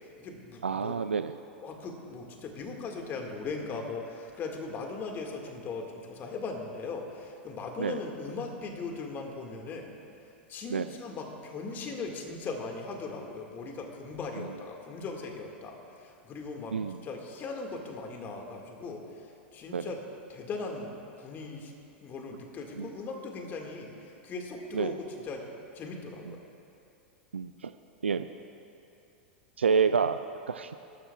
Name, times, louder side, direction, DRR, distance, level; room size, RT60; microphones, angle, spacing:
voice 1, 0.0-1.0 1.6-9.9 10.5-20.0 20.3-20.9 21.2-21.7 22.0-25.5 25.7-26.4, left 3 dB, 35° left, 2 dB, 1.9 m, -39 dB
voice 2, 0.6-1.4 7.8-8.0 10.7-10.9 14.4-14.5 16.7-17.0 19.7-19.9 22.8-22.9 24.7-24.9 26.3-26.4 27.3-27.7 28.0-28.3 29.6-30.8, right 5 dB, 90° right, 10 dB, 0.4 m, -29 dB
20.5 x 13.0 x 2.4 m, 2.8 s
hypercardioid pair, 95°, 6 cm